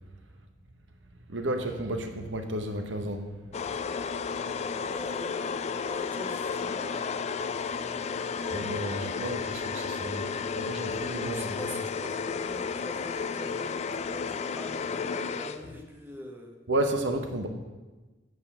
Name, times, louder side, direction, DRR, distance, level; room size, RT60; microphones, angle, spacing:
voice 1, 1.3-3.3 8.5-11.8 16.7-17.5, right 1 dB, 75° right, 6 dB, 1.0 m, -32 dB
sound 1, 3.5-15.9, left 5 dB, 35° left, 0.3 m, -33 dB
voice 2, 4.9-7.1 8.4-8.6 11.3-16.6, equal, 10° right, 2 dB, 1.1 m, -44 dB
8.4 x 4.8 x 7.1 m, 1.2 s
head